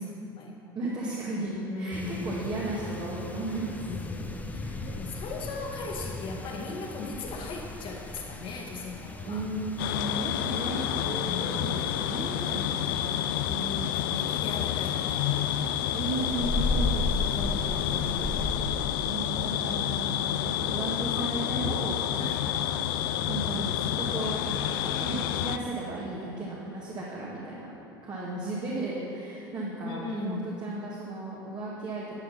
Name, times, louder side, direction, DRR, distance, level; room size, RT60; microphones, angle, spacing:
voice 1, 0.0-0.6 1.7-2.4 3.9-9.4 11.0-12.0 12.5-12.6 13.9-15.9 17.2-17.5 22.2-22.5 29.9-30.6, left 3 dB, 45° left, 0 dB, 1.8 m, -39 dB
voice 2, 0.8-4.0 4.5-4.9 9.2-14.2 15.9-18.7 19.0-22.6 23.3-27.7 28.0-32.1, right 2 dB, 35° right, -5 dB, 1.8 m, -35 dB
sound 1, 1.9-18.5, left 2 dB, 15° left, 0.8 m, -37 dB
sound 2, 9.8-25.6, left 11 dB, 65° left, 0.4 m, -29 dB
11.0 x 6.6 x 5.7 m, 2.9 s
figure-of-eight pair, 70°, 12 cm